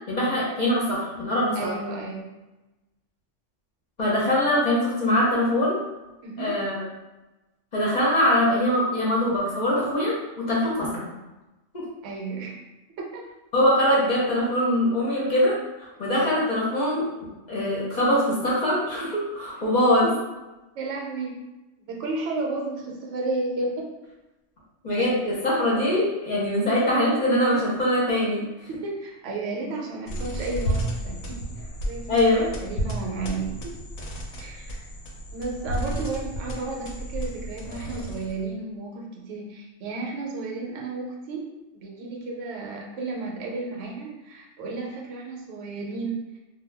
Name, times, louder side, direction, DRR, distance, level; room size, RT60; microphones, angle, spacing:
voice 1, 0.1-1.7 4.0-5.8 6.4-6.8 7.7-11.1 13.5-17.0 17.5-20.1 24.8-28.4 32.1-32.5, left 1 dB, 45° left, -5 dB, 0.7 m, -23 dB
voice 2, 1.5-2.3 6.2-6.6 12.0-12.6 13.0-13.2 20.8-21.4 21.9-23.9 28.7-33.8 34.4-34.8 35.3-46.3, right 3 dB, 75° right, -2 dB, 0.9 m, -33 dB
sound 1, 30.1-38.5, right 1 dB, 70° left, 0.8 m, -32 dB
2.2 x 2.1 x 3.3 m, 1.0 s
omnidirectional pair, 1.3 m